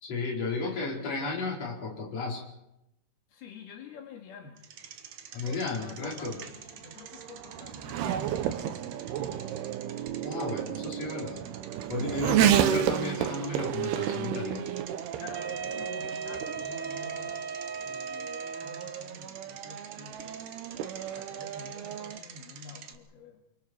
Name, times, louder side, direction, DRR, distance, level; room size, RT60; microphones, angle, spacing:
voice 1, 0.0-2.4 5.3-6.4 10.2-11.4 11.9-14.7, left 3 dB, 40° left, -2 dB, 5.5 m, -33 dB
voice 2, 0.6-1.1 3.3-4.6 5.3-9.5 15.2-17.4 17.8-20.4 21.1-23.4, left 5 dB, 75° left, 2 dB, 3.9 m, -49 dB
Bicycle, 4.6-23.0, right 8 dB, 70° right, 1.4 m, -48 dB
Race car auto racing / Accelerating revving vroom, 5.9-22.2, right 10 dB, 85° right, 3.0 m, -32 dB
Wind instrument woodwind instrument, 15.3-19.2, right 5 dB, 45° right, 2.5 m, -37 dB
28.5 x 24.5 x 4.6 m, 0.86 s
omnidirectional pair, 4.5 m